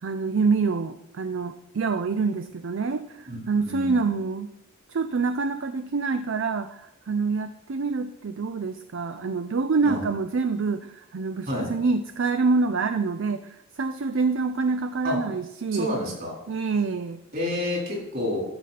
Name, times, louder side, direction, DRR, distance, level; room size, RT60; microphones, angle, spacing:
voice 1, 0.0-4.5 4.9-15.9 16.5-17.2, right 4 dB, 65° right, 10 dB, 0.5 m, -26 dB
voice 2, 3.3-3.9 9.8-10.0 11.5-11.7 15.0-15.2 15.7-16.4 17.3-18.4, left 1 dB, 45° right, -2 dB, 4.0 m, -29 dB
12.0 x 7.6 x 4.2 m, 0.84 s
head